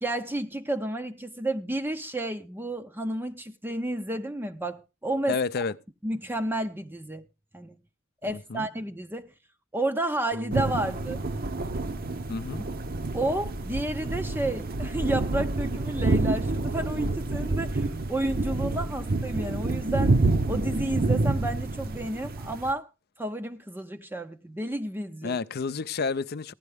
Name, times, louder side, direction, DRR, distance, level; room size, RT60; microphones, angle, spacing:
voice 1, 0.0-5.4 6.0-7.3 7.5-7.8 8.2-9.3 9.7-11.2 13.1-20.2 20.5-22.9 23.2-25.4, right 1 dB, 10° right, 0.5 m, -31 dB
voice 2, 5.3-5.7 8.2-8.7 12.3-12.7 25.2-26.5, left 5 dB, 50° left, 0.5 m, -30 dB
Bass guitar, 10.3-16.6, equal, 85° right, 1.5 m, -47 dB
sound 1, 10.5-22.7, right 2 dB, 50° right, 0.8 m, -28 dB
15.5 x 11.0 x 3.4 m
head